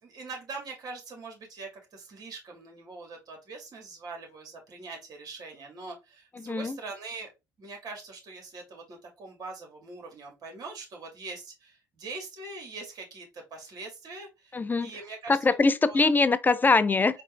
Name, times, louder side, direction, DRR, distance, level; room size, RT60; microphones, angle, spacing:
voice 1, 0.0-7.3 7.6-15.5 15.8-16.1, right 3 dB, 50° right, 1.9 m, -42 dB
voice 2, 6.4-6.8 14.5-14.9 15.3-17.2, left 3 dB, 20° left, 0.4 m, -23 dB
4.3 x 2.6 x 3.3 m
hypercardioid pair, 60°, 8 cm